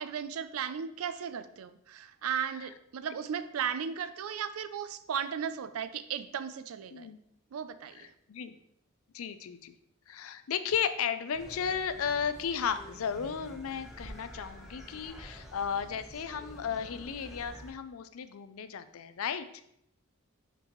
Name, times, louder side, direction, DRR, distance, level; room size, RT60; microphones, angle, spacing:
voice 1, 0.0-7.1 7.5-8.1, right 7 dB, 90° right, 12 dB, 0.4 m, -36 dB
voice 2, 9.1-9.7 10.1-19.6, left 7 dB, 80° left, 11 dB, 0.4 m, -34 dB
sound 1, 11.3-17.7, equal, ahead, 0.9 m, -48 dB
5.8 x 5.3 x 3.0 m, 0.75 s
head